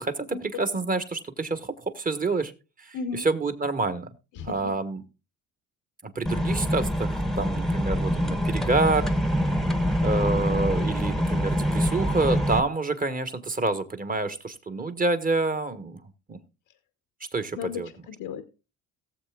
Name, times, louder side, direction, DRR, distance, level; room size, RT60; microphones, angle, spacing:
voice 1, 0.0-2.5 2.8-4.1 4.4-5.0 6.0-9.1 10.0-16.0 16.3-16.4 17.3-17.9, right 3 dB, 25° right, 9 dB, 1.4 m, -27 dB
voice 2, 2.9-3.3 4.3-4.7 17.6-18.4, left 6 dB, 80° left, 9 dB, 1.1 m, -35 dB
sound 1, 6.3-12.6, equal, ahead, 1.0 m, -25 dB
17.5 x 7.5 x 2.4 m, 0.29 s
cardioid pair, 90°, 34 cm